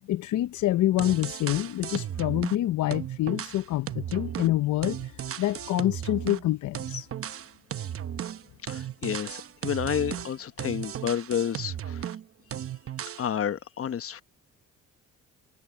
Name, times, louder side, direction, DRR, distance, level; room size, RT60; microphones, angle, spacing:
voice 1, 0.1-7.1, left 14 dB, 75° left, 0.8 m, -27 dB
sound 1, 1.0-2.6 2.9-6.5 6.7-12.2 12.5-13.3, right 10 dB, 50° right, 0.9 m, -35 dB
voice 2, 8.7-12.1 13.2-14.2, left 9 dB, 50° left, 1.0 m, -30 dB
cardioid pair, 90°, 30 cm